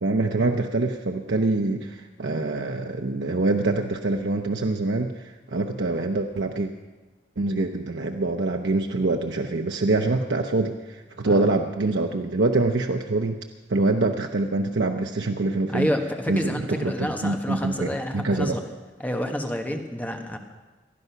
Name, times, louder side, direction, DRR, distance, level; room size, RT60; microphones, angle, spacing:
voice 1, 0.0-6.7 7.4-13.3 13.7-15.9 16.3-18.5, right 2 dB, 80° right, 3 dB, 0.8 m, -25 dB
voice 2, 15.7-18.6 19.0-20.4, equal, 10° left, 4 dB, 1.3 m, -29 dB
19.5 x 12.0 x 5.8 m, 1.2 s
head